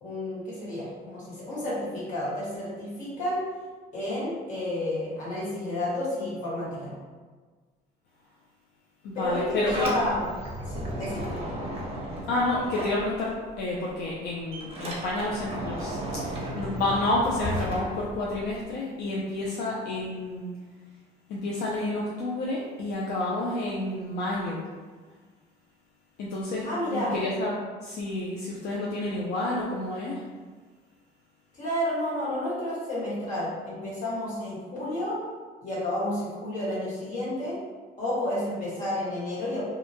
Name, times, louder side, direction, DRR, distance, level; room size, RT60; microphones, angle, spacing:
voice 1, 0.0-3.4 3.9-6.9 9.1-10.2 10.7-11.3 26.6-27.1 31.5-35.2 35.6-37.6 38.0-39.6, left 1 dB, 50° left, -8 dB, 1.3 m, -31 dB
voice 2, 9.0-9.9 12.3-20.5 21.3-24.6 26.2-26.7 26.9-27.5 27.8-30.2, left 2 dB, 70° left, -4 dB, 0.5 m, -29 dB
Sliding door, 9.2-13.6 13.9-18.6, right 1 dB, 35° right, 0.7 m, -35 dB
2.7 x 2.1 x 2.7 m, 1.4 s
cardioid pair, 110°, 17 cm